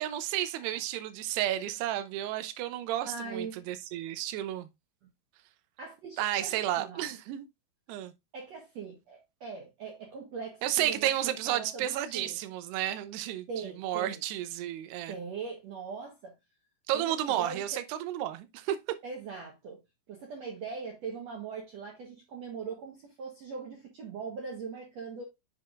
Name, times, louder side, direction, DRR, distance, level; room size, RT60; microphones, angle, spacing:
voice 1, 0.0-4.7 6.2-7.5 7.9-8.1 10.6-13.5 13.8-15.2 16.9-18.8, right 12 dB, 85° right, 2.8 m, -32 dB
voice 2, 3.0-3.7 5.8-7.1 8.3-11.1 11.4-12.4 13.5-14.2 15.1-16.3 16.9-17.8 19.0-19.8 20.1-25.2, right 5 dB, 65° right, 1.7 m, -41 dB
7.7 x 5.7 x 2.4 m
omnidirectional pair, 4.6 m